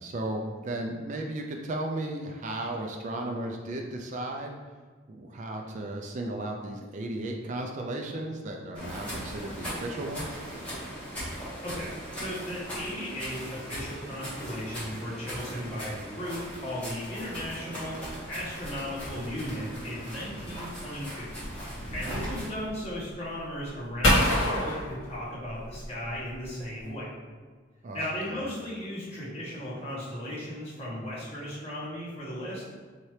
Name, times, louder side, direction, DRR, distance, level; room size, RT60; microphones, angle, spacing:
voice 1, 0.0-4.6 5.1-10.4 22.0-22.3 27.8-28.4, right 1 dB, 40° right, 1 dB, 0.3 m, -35 dB
sound 1, 8.7-22.5, equal, 5° left, 1.4 m, -39 dB
voice 2, 11.6-18.0 18.3-21.3 21.9-27.1 27.9-32.6, equal, 30° left, -9 dB, 1.3 m, -36 dB
sound 2, 18.6-26.9, left 1 dB, 80° left, 1.3 m, -31 dB
4.4 x 2.8 x 3.2 m, 1.5 s
head